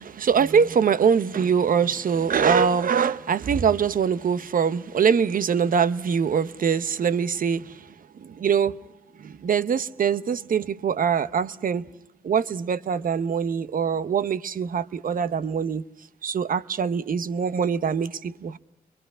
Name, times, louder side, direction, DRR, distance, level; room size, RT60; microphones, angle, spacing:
voice 1, 0.0-7.9 8.1-8.8 9.2-11.9 12.2-15.8 16.2-18.6, right 7 dB, 60° right, 0.8 m, -23 dB
27.5 x 23.0 x 6.2 m
cardioid pair, 60°, 16 cm